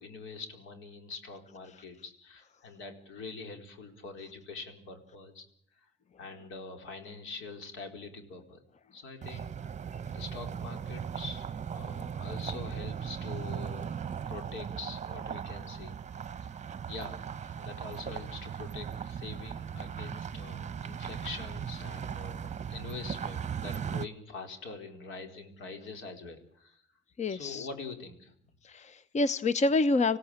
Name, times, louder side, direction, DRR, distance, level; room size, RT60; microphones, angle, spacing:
voice 1, 0.0-5.5 5.8-5.9 6.2-9.7 10.1-13.9 14.2-15.9 16.4-16.5 16.9-17.2 17.6-26.8 27.3-28.3, left 4 dB, 85° left, 5 dB, 4.4 m, -44 dB
sound 1, 9.2-24.1, right 7 dB, 35° right, 0.9 m, -38 dB
voice 2, 27.2-27.7 28.6-30.2, left 3 dB, 35° left, 15 dB, 0.9 m, -27 dB
26.5 x 16.5 x 8.7 m, 0.65 s
cardioid pair, 90°, 20 cm